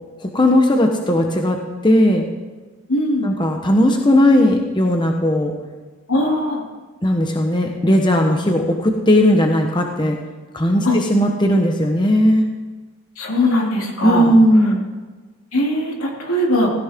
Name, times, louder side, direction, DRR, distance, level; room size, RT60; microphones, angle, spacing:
voice 1, 0.2-1.6 1.8-2.3 3.2-5.5 7.0-10.2 10.5-12.4 14.0-14.8, equal, 20° left, 2 dB, 1.0 m, -16 dB
voice 2, 2.9-3.3 6.1-6.6 10.8-11.0 13.2-14.3 15.5-16.7, left 1 dB, 75° left, -1 dB, 3.0 m, -20 dB
16.5 x 16.5 x 3.7 m, 1.3 s
head